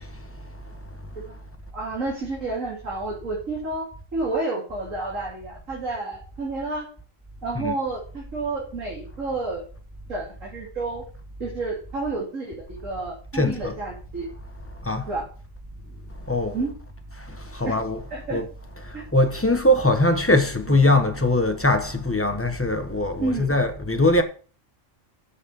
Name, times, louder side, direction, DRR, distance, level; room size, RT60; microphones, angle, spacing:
voice 1, 1.7-3.9 4.1-6.9 7.4-9.6 10.1-11.0 11.4-14.3 15.1-15.2 16.5-16.7 17.6-17.7 18.1-18.4 18.9-19.0 20.7-20.8 23.2-23.5, right 3 dB, 80° right, 2.9 m, -30 dB
voice 2, 13.3-13.7 14.9-15.1 16.3-16.6 17.5-18.0 18.3-18.4 19.1-24.2, left 1 dB, 10° left, 1.1 m, -21 dB
7.6 x 6.2 x 7.1 m
omnidirectional pair, 1.3 m